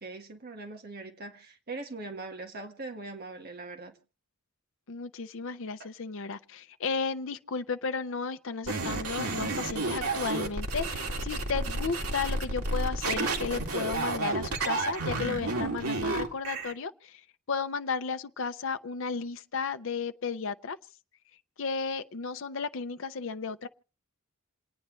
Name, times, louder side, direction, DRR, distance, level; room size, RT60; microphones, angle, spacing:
voice 1, 0.0-4.0, right 3 dB, 45° right, 1.5 m, -41 dB
voice 2, 4.9-17.2 17.5-20.8 21.6-23.7, left 5 dB, 60° left, 0.6 m, -34 dB
sound 1, 8.7-16.7, right 2 dB, 90° right, 2.2 m, -31 dB
28.5 x 9.5 x 3.1 m
head